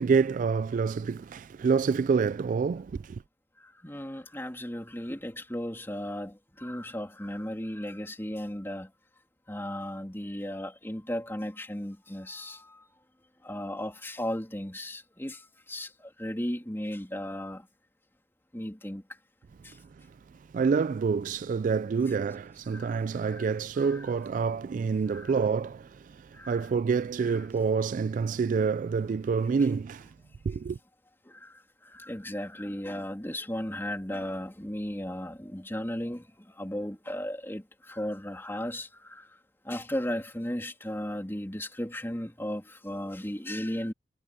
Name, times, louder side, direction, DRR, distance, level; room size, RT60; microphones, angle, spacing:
voice 1, 0.0-3.2 20.5-25.9 26.5-30.1 30.5-30.8, right 5 dB, 45° right, 0.3 m, -27 dB
voice 2, 3.6-8.9 9.5-12.8 13.4-17.7 18.5-19.0 19.6-19.8 22.7-22.9 23.2-23.5 23.8-24.1 25.1-25.3 26.3-26.7 31.2-39.3 39.6-43.9, left 1 dB, 15° left, 3.1 m, -36 dB
head